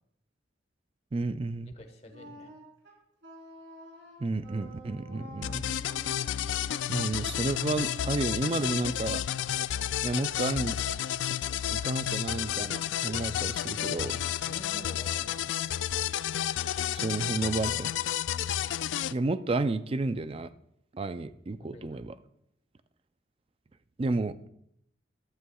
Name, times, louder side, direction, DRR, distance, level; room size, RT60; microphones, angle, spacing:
voice 1, 1.1-1.7 4.2-5.7 6.9-9.2 10.0-10.8 11.7-14.2 16.9-17.9 19.1-20.5 20.9-22.2 24.0-24.4, right 3 dB, 30° right, 13 dB, 0.4 m, -31 dB
voice 2, 1.6-2.5 14.4-15.5 21.7-22.0, left 1 dB, 35° left, 5 dB, 1.3 m, -48 dB
Wind instrument woodwind instrument, 2.1-9.1, right 1 dB, 75° right, 3.8 m, -50 dB
sound 1, 5.4-19.1, left 11 dB, 80° left, 0.3 m, -31 dB
13.5 x 12.5 x 2.4 m, 0.74 s
head